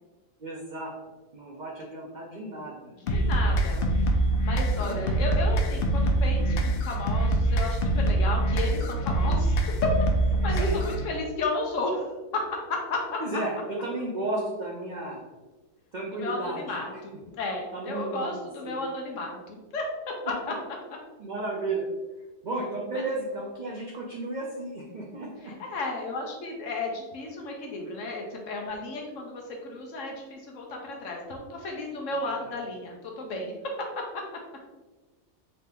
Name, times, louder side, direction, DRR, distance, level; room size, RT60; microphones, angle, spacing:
voice 1, 0.4-0.9 1.3-2.9 4.8-5.0 10.5-10.8 13.2-15.2 15.9-16.8 17.7-18.3 18.6-18.8 21.2-21.9 22.4-25.5 32.2-32.5, right 2 dB, 85° right, -2 dB, 0.4 m, -33 dB
voice 2, 2.9-3.9 4.4-9.9 10.2-12.4 12.7-13.2 16.1-19.8 20.3-20.5 22.9-23.0 25.4-33.5 34.0-34.1, left 2 dB, 60° left, 0 dB, 1.0 m, -33 dB
sound 1, 3.1-11.1, right 1 dB, 90° left, 0.5 m, -24 dB
4.2 x 2.7 x 3.4 m, 1.2 s
omnidirectional pair, 1.6 m